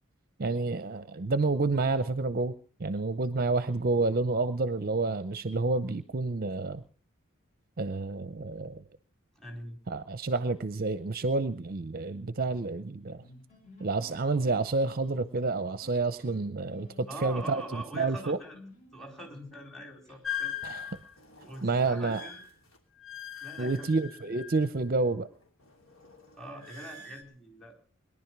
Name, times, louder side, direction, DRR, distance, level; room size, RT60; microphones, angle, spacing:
voice 1, 0.4-2.5 2.8-6.8 7.8-8.8 9.9-13.2 13.8-18.4 20.6-20.9 21.6-22.3 23.6-25.3, right 3 dB, 45° right, 13 dB, 0.7 m, -29 dB
voice 2, 9.4-9.8 17.1-18.6 18.9-20.5 21.4-22.4 23.4-23.9 26.4-27.8, right 1 dB, ahead, 3 dB, 4.1 m, -43 dB
sound 1, 13.2-20.2, left 1 dB, 35° left, 6.4 m, -53 dB
sound 2, 20.2-25.0 25.3-27.2, left 8 dB, 75° left, 3.2 m, -41 dB
22.0 x 11.0 x 6.0 m, 0.43 s
head